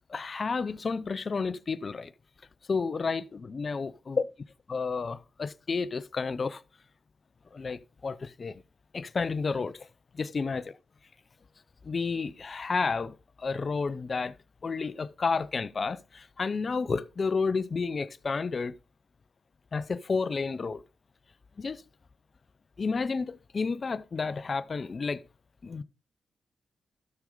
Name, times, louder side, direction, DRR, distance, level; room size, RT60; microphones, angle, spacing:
voice 1, 0.1-2.1 2.7-3.9 4.7-6.6 7.5-8.6 8.9-9.9 10.1-10.7 11.8-14.3 14.6-18.7 19.7-20.8 21.6-21.8 22.8-25.2 25.6-25.8, left 4 dB, 45° left, 0.7 m, -31 dB
12.5 x 6.4 x 3.9 m
cardioid pair, 60°, 0 cm